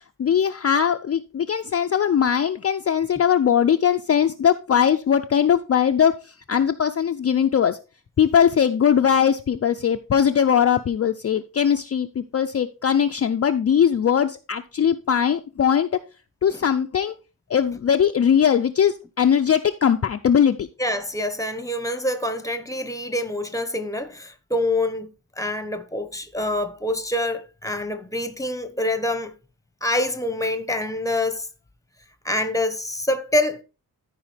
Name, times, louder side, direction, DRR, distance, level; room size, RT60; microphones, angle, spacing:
voice 1, 0.0-7.8 8.2-15.9 16.4-17.1 17.5-20.7, left 8 dB, 40° left, 0.4 m, -20 dB
voice 2, 20.8-25.1 25.4-29.3 29.8-31.5 32.2-33.6, left 1 dB, 10° left, 0.9 m, -26 dB
13.5 x 4.8 x 3.3 m
wide cardioid pair, 130°, 38 cm